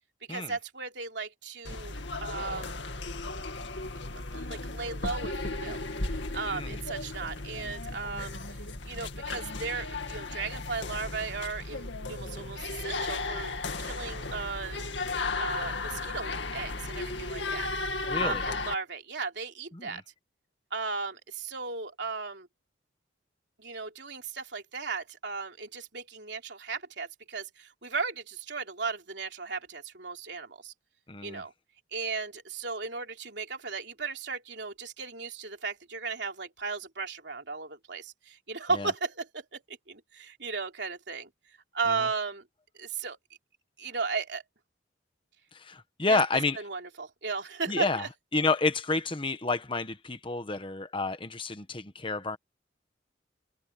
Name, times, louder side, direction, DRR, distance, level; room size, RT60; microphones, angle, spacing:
voice 1, 0.3-2.0 2.2-2.8 4.1-5.8 6.3-13.5 13.8-14.8 15.4-20.0 20.7-22.5 23.6-30.7 31.2-31.5 31.9-42.5 42.7-43.2 43.8-44.4 46.1-46.2 46.6-48.1, right 4 dB, 65° right, 3.4 m, -36 dB
sound 1, 1.6-18.7, left 3 dB, 75° left, 2.3 m, -35 dB
voice 2, 6.4-6.8 18.1-18.4 19.7-20.0 31.1-31.4 38.7-38.9 45.5-46.6 47.7-48.0 48.3-52.4, left 3 dB, 25° left, 1.2 m, -30 dB
head